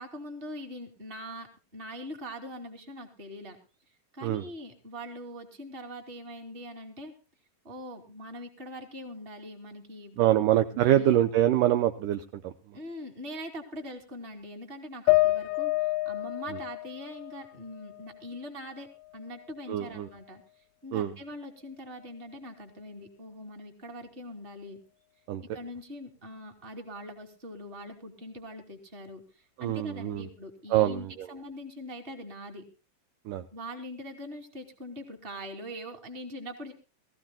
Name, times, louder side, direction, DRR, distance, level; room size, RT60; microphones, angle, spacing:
voice 1, 0.0-1.5 1.7-3.6 4.1-7.1 7.6-10.4 10.7-11.2 12.7-20.4 20.8-24.8 25.4-29.2 29.6-32.6 33.5-36.7, equal, 15° right, 3 dB, 2.3 m, -42 dB
voice 2, 10.2-12.5 19.7-20.1 20.9-21.1 25.3-25.4 29.6-30.3 30.7-31.3 33.3-33.4, right 12 dB, 75° right, 8 dB, 2.1 m, -25 dB
sound 1, 15.1-18.5 18.9-19.9, left 19 dB, 70° left, 1.9 m, -29 dB
22.0 x 15.0 x 2.2 m, 0.35 s
omnidirectional pair, 4.3 m